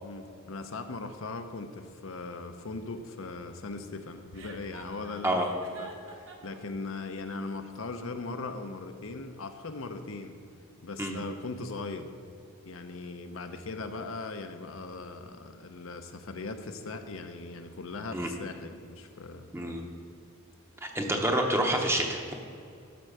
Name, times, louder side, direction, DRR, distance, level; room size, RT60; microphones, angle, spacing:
voice 1, 0.0-5.5 5.8-10.4 10.8-12.1 12.7-19.5, left 3 dB, 65° left, 7 dB, 0.7 m, -39 dB
Chuckle chortle, 4.3-6.6, right 2 dB, 60° right, 1.1 m, -48 dB
voice 2, 19.5-19.9 20.9-22.3, right 1 dB, 10° right, 2 dB, 0.8 m, -27 dB
12.0 x 4.5 x 6.5 m, 2.4 s
head